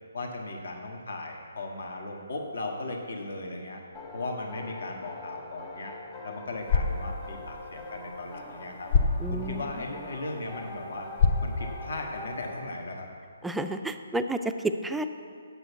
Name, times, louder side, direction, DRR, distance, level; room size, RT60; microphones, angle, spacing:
voice 1, 0.1-3.8 4.1-5.9 6.2-8.9 9.3-11.1 11.4-13.1, left 2 dB, 75° left, 1 dB, 1.4 m, -37 dB
sound 1, 3.9-12.7, left 3 dB, 20° left, 0.9 m, -43 dB
sound 2, 6.5-12.5, left 4 dB, 55° left, 0.7 m, -30 dB
voice 2, 9.2-9.7 13.4-15.1, right 2 dB, 5° right, 7 dB, 0.4 m, -30 dB
7.8 x 7.0 x 8.1 m, 2.3 s
hypercardioid pair, 150°, 0 cm